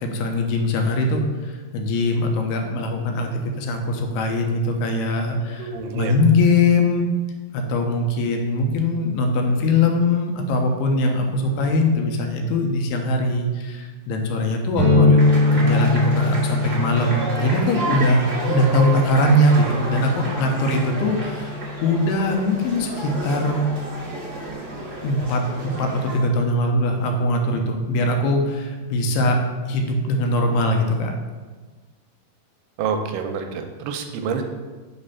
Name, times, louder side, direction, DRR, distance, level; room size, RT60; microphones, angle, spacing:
voice 1, 0.0-7.1 7.5-15.2 15.5-23.7 25.0-29.4 29.7-31.1, left 1 dB, 85° left, 3 dB, 2.8 m, -21 dB
voice 2, 5.6-6.1 32.8-34.4, right 6 dB, 85° right, 5 dB, 2.5 m, -27 dB
sound 1, 14.7-22.4, left 2 dB, 45° left, 1.5 m, -23 dB
sound 2, 15.2-26.2, right 2 dB, 60° right, 0.7 m, -31 dB
6.0 x 3.2 x 5.4 m, 1.3 s
omnidirectional pair, 4.6 m